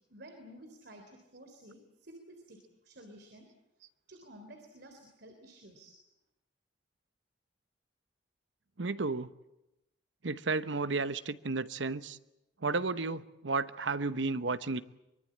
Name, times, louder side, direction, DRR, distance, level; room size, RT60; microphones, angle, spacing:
voice 1, 0.1-2.6 2.8-3.5 4.1-5.9, right 1 dB, 60° right, 3.6 m, -52 dB
voice 2, 8.8-9.3 10.2-12.2 12.6-14.8, right 3 dB, 80° right, 1.0 m, -32 dB
24.0 x 23.5 x 8.7 m
head